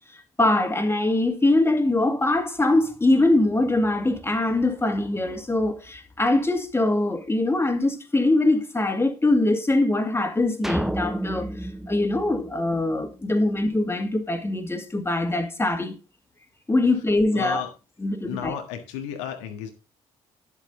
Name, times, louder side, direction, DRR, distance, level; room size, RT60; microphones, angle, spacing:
voice 1, 0.4-11.5 11.9-16.0 16.7-17.6 18.0-18.5, left 2 dB, 15° left, 2.2 m, -22 dB
sound 1, 10.6-13.1, right 1 dB, ahead, 0.8 m, -30 dB
voice 2, 17.3-17.7 18.2-19.7, left 10 dB, 75° left, 1.6 m, -33 dB
10.5 x 7.6 x 3.8 m
hypercardioid pair, 50°, 15 cm